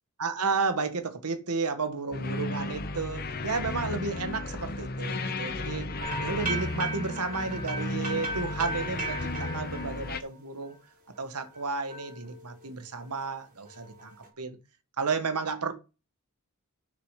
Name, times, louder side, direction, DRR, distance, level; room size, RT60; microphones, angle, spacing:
voice 1, 0.2-5.9 6.2-10.7 11.2-14.6 15.0-15.7, right 4 dB, 90° right, 1.4 m, -32 dB
sound 1, 2.1-10.2, left 2 dB, 45° left, 0.9 m, -34 dB
sound 2, 6.0-10.8 11.2-13.2 13.6-14.3, right 2 dB, 40° right, 3.8 m, -38 dB
6.7 x 6.6 x 5.7 m
head